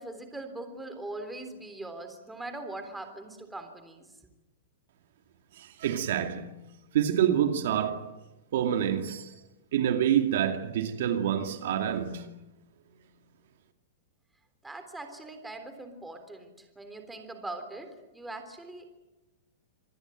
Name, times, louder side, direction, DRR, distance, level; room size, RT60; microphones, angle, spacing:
voice 1, 0.0-4.1 14.6-18.8, right 2 dB, 5° right, 3.5 m, -41 dB
voice 2, 5.6-6.6 6.9-8.1 8.5-9.3 9.7-12.3, right 9 dB, 65° right, 2.5 m, -27 dB
26.5 x 20.0 x 9.2 m
supercardioid pair, 155°, 0 cm